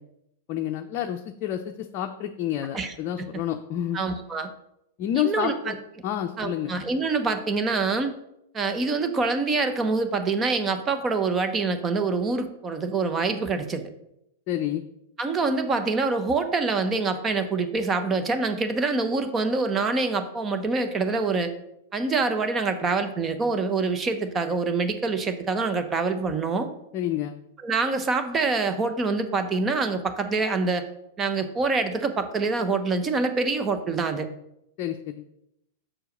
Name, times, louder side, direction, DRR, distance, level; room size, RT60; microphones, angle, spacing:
voice 1, 0.5-4.0 5.0-5.7 6.0-6.7 14.5-14.8 26.9-27.3 34.8-35.2, left 11 dB, 45° left, 4 dB, 0.6 m, -29 dB
voice 2, 2.7-3.4 3.9-4.5 5.2-5.8 6.4-8.2 8.5-13.8 15.2-21.5 21.9-26.7 27.6-30.8 31.2-34.3, right 4 dB, 20° right, 8 dB, 0.9 m, -25 dB
6.3 x 4.6 x 6.5 m, 0.81 s
hypercardioid pair, 110°, 0 cm